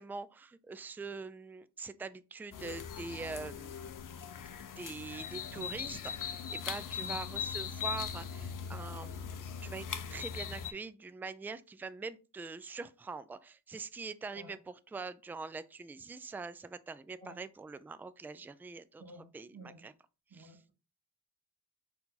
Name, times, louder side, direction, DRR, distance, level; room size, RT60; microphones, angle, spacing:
voice 1, 0.0-3.8 4.8-19.0 19.3-19.9 20.3-20.6, right 4 dB, 5° right, 0.3 m, -44 dB
sound 1, 2.5-10.7, left 7 dB, 45° left, 0.6 m, -40 dB
voice 2, 19.0-19.8 20.3-20.7, right 2 dB, 55° right, 1.8 m, -51 dB
4.5 x 2.8 x 4.0 m
supercardioid pair, 45°, 44 cm